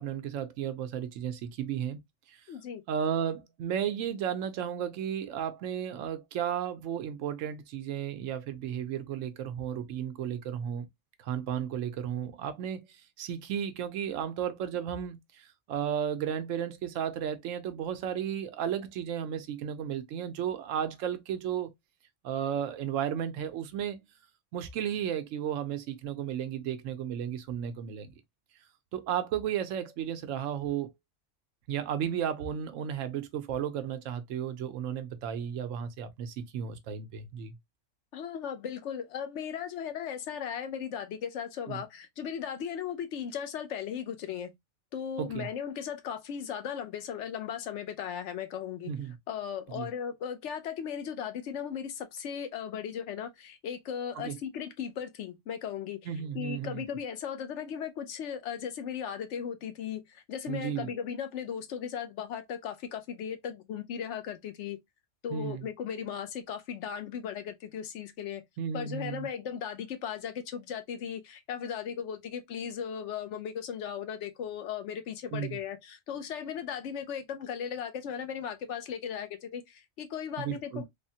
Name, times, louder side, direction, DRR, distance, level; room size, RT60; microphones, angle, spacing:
voice 1, 0.0-2.0 2.3-2.4 2.9-10.9 11.2-12.8 13.2-21.7 22.2-24.0 24.5-28.1 28.9-30.9 31.7-37.5 41.7-41.8 45.2-45.5 48.9-49.2 49.7-49.9 54.2-54.4 56.1-56.8 60.5-60.9 65.3-65.7 68.6-69.3 75.3-75.6 80.4-80.8, right 9 dB, 85° right, 1.0 m, -34 dB
voice 2, 2.5-2.8 38.1-44.5 44.9-48.9 49.3-56.0 56.3-64.8 65.2-68.4 68.7-80.9, left 8 dB, 70° left, 0.9 m, -37 dB
3.4 x 2.1 x 2.7 m
omnidirectional pair, 1.3 m